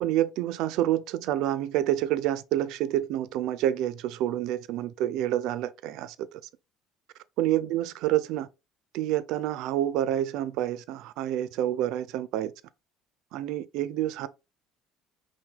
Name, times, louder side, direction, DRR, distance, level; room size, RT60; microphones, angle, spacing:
voice 1, 0.0-6.4 7.4-8.5 8.9-12.5 13.3-14.3, right 12 dB, 75° right, 0.5 m, -28 dB
5.8 x 2.2 x 3.6 m
supercardioid pair, 95°, 0 cm